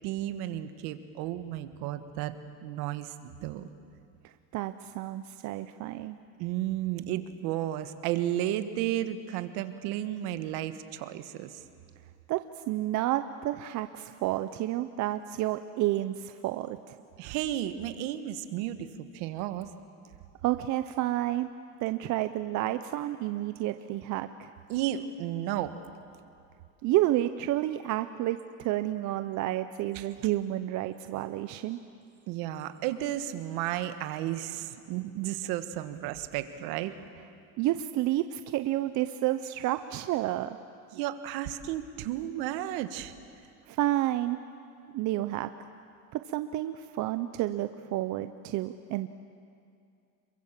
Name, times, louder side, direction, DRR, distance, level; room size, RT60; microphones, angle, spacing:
voice 1, 0.0-2.3 2.6-3.1 3.4-3.7 6.4-11.6 17.2-19.7 24.7-25.7 29.9-30.0 32.3-36.9 40.9-43.1, right 12 dB, 60° right, 10 dB, 1.6 m, -33 dB
voice 2, 4.2-6.2 12.3-17.0 20.4-21.5 21.8-24.5 26.8-31.8 37.6-40.6 43.7-44.4 44.9-45.5 46.1-49.1, right 14 dB, 45° right, 10 dB, 0.7 m, -30 dB
27.0 x 23.0 x 7.5 m, 2.4 s
supercardioid pair, 140°, 43 cm